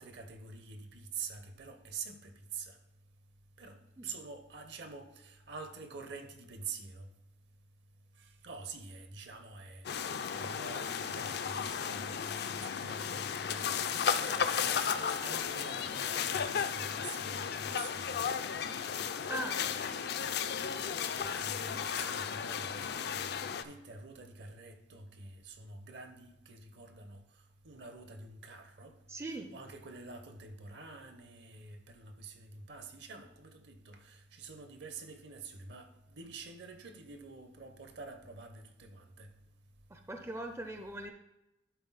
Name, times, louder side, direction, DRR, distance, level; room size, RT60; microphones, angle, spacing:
voice 1, 0.0-2.8 3.6-7.1 8.2-18.2 21.2-27.2 27.6-29.0 29.5-39.3, right 4 dB, 65° right, 0.8 m, -47 dB
sound 1, 9.8-23.6, left 7 dB, 60° left, 0.4 m, -34 dB
voice 2, 19.3-19.7 29.1-29.5 39.9-41.1, right 1 dB, 15° right, 0.4 m, -40 dB
11.5 x 3.9 x 4.0 m
head